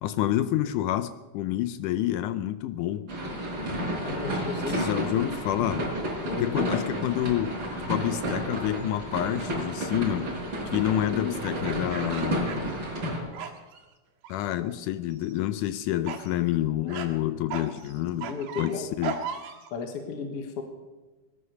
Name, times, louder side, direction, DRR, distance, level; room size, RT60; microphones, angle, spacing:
voice 1, 0.0-3.1 4.7-5.9 6.4-7.6 7.9-10.3 10.7-12.7 14.3-18.3 18.6-19.2, left 13 dB, 80° left, 13 dB, 1.9 m, -28 dB
sound 1, 3.1-13.2, right 1 dB, 30° right, 4.5 m, -31 dB
voice 2, 4.0-5.1 6.2-6.9 11.1-11.4 18.2-18.9 19.7-20.6, left 5 dB, 55° left, 6 dB, 1.9 m, -34 dB
sound 2, 9.1-9.4 11.4-13.1 13.3-13.8 14.2-14.7 15.1-15.4 16.1-16.3 16.9-17.1 17.5-19.7, right 7 dB, 85° right, 3.7 m, -37 dB
19.0 x 11.5 x 6.7 m, 1.2 s
omnidirectional pair, 4.2 m